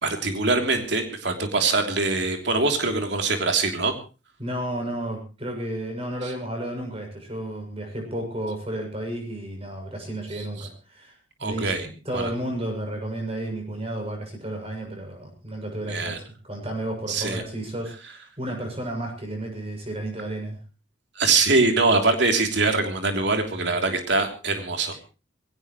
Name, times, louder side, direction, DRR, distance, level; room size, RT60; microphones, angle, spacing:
voice 1, 0.0-3.9 10.3-10.7 11.4-11.9 12.1-12.3 15.9-16.2 17.1-17.4 21.1-24.9, right 3 dB, 60° right, 5 dB, 3.2 m, -23 dB
voice 2, 4.4-20.6 24.9-25.0, right 1 dB, 30° right, 2 dB, 7.2 m, -32 dB
22.0 x 17.0 x 3.1 m, 0.33 s
head